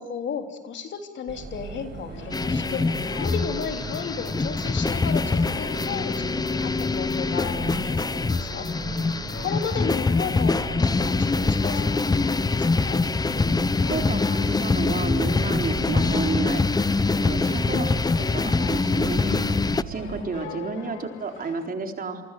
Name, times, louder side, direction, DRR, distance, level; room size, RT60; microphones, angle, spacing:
voice 1, 0.0-2.8 3.2-8.7 9.4-11.9 12.2-13.0, left 6 dB, 65° left, 5 dB, 3.6 m, -34 dB
sound 1, 1.3-20.3, right 4 dB, 65° right, 6.4 m, -38 dB
sound 2, 2.1-21.7, left 11 dB, 85° left, 2.0 m, -43 dB
sound 3, 2.3-19.8, left 3 dB, 20° left, 0.8 m, -24 dB
voice 2, 13.9-16.6 17.2-17.9 18.2-19.4 19.9-22.2, right 4 dB, 45° right, 4 dB, 4.1 m, -31 dB
28.5 x 24.0 x 7.9 m, 1.3 s
cardioid pair, 90°, 20 cm